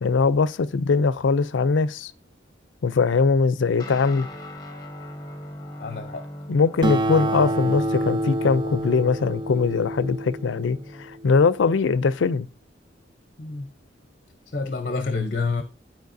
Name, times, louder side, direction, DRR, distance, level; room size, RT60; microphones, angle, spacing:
voice 1, 0.0-2.1 2.8-4.3 6.5-12.5, left 4 dB, 85° left, 0.4 m, -21 dB
Guitar, 3.8-11.5, left 1 dB, 20° left, 1.3 m, -40 dB
voice 2, 5.8-6.3 13.4-13.7 14.5-15.6, left 4 dB, 50° left, 0.7 m, -28 dB
Acoustic guitar, 6.8-11.7, right 1 dB, 25° right, 0.5 m, -28 dB
12.0 x 4.5 x 2.6 m
head